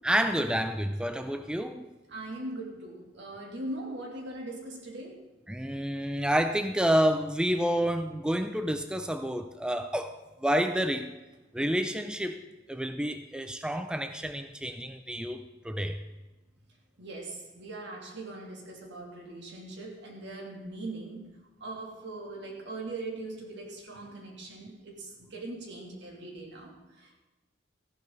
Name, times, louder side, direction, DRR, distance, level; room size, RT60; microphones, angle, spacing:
voice 1, 0.0-1.9 5.5-11.1 11.5-16.0, equal, 5° right, 8 dB, 0.5 m, -29 dB
voice 2, 2.1-5.2 17.0-21.3 21.6-27.2, right 2 dB, 65° right, 0 dB, 3.0 m, -40 dB
14.5 x 11.5 x 4.0 m, 1.1 s
head